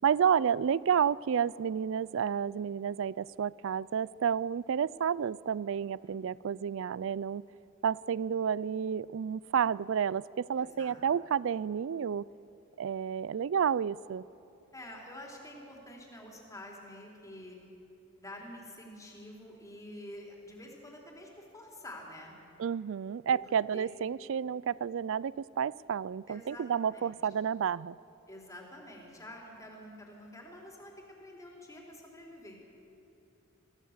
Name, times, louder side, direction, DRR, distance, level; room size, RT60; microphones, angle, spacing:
voice 1, 0.0-7.4 7.8-12.3 12.8-14.2 22.6-28.0, right 7 dB, 65° right, 22 dB, 0.4 m, -30 dB
voice 2, 10.6-11.0 14.7-17.6 18.2-22.3 23.3-23.9 26.3-27.2 28.3-30.9 31.2-32.6, left 1 dB, 15° left, -1 dB, 3.6 m, -48 dB
24.0 x 16.0 x 7.3 m, 2.9 s
head